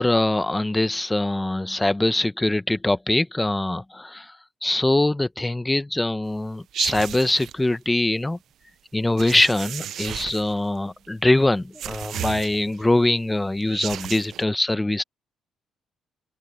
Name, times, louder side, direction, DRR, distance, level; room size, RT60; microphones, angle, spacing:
voice 1, 0.0-4.3 4.6-8.4 8.9-15.0, left 2 dB, 15° left, 0.9 m, -23 dB
sound 1, 6.7-7.5 9.2-10.6 11.7-12.8 13.6-14.4, right 11 dB, 70° right, 0.5 m, -33 dB
open air
cardioid pair, 90°, 0 cm